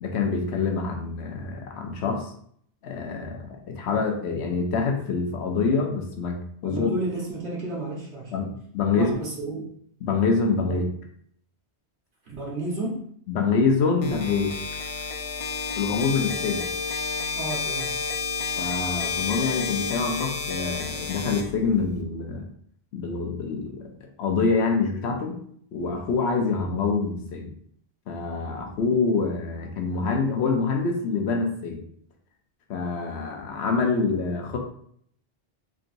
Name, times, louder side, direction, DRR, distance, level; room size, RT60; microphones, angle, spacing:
voice 1, 0.0-2.3 2.8-6.4 6.6-6.9 8.3-9.1 10.0-10.8 13.3-14.5 15.8-16.6 18.6-22.4 22.9-23.8 24.2-25.4 25.7-27.5 28.1-31.8 32.7-34.6, left 4 dB, 85° left, 3 dB, 1.0 m, -26 dB
voice 2, 6.6-8.5 8.9-9.7 10.7-10.8 12.2-13.0 17.3-17.9, right 2 dB, 80° right, -5 dB, 1.5 m, -32 dB
sound 1, 14.0-22.0, left 5 dB, 45° left, 0.5 m, -30 dB
3.9 x 3.6 x 2.6 m, 0.63 s
omnidirectional pair, 1.1 m